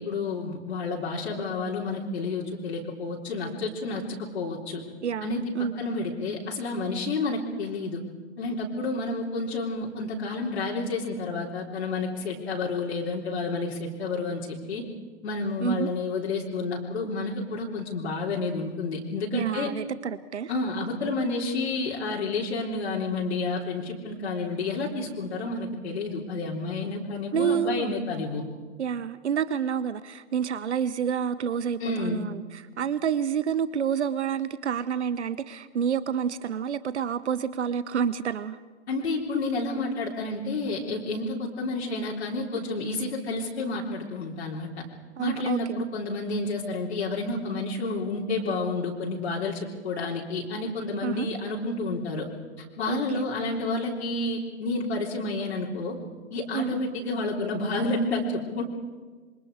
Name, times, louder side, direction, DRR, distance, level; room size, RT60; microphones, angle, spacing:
voice 1, 0.0-4.8 5.2-5.4 5.8-8.0 8.4-14.8 15.2-19.7 20.5-28.4 31.8-32.2 38.9-44.7 45.2-52.3 52.6-56.0 56.3-58.6, left 3 dB, 65° left, -3 dB, 3.7 m, -30 dB
voice 2, 5.0-5.7 15.6-15.9 19.3-20.5 27.3-28.0 28.8-38.6 45.2-45.8 51.0-51.3 52.9-53.2 56.5-56.7, right 8 dB, 70° right, 16 dB, 1.0 m, -28 dB
28.0 x 24.0 x 4.9 m, 1.4 s
figure-of-eight pair, 115°, 35 cm